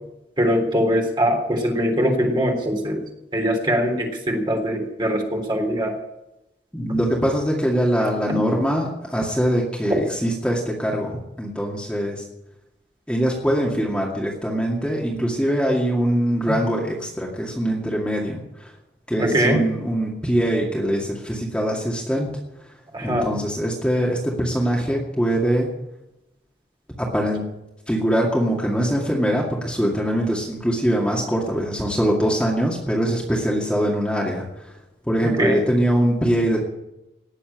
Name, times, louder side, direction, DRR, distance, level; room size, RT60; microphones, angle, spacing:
voice 1, 0.4-3.0 3.3-6.0 19.2-19.6 22.9-23.3 35.2-35.6, equal, 25° right, 1 dB, 3.5 m, -22 dB
voice 2, 6.7-12.3 13.1-18.7 19.1-22.3 22.6-22.8 23.0-25.7 27.0-27.4 27.9-34.8 35.1-36.6, equal, 5° left, -3 dB, 2.3 m, -23 dB
18.5 x 7.5 x 9.0 m, 0.92 s
head